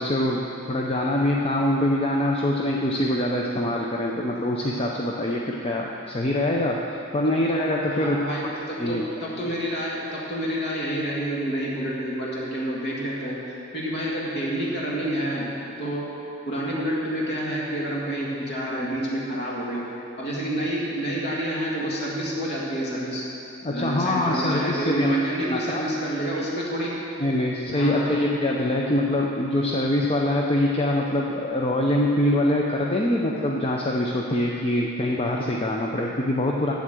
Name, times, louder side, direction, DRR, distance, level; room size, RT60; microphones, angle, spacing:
voice 1, 0.0-8.2 8.8-9.0 23.6-25.2 25.5-25.8 27.2-36.7, left 1 dB, 30° left, -1 dB, 0.6 m, -24 dB
voice 2, 7.9-13.4 13.7-15.5 15.8-16.1 16.4-19.8 20.2-23.2 23.7-26.9 27.7-28.1, right 1 dB, 55° left, -5 dB, 1.9 m, -28 dB
8.4 x 8.0 x 7.7 m, 2.9 s
head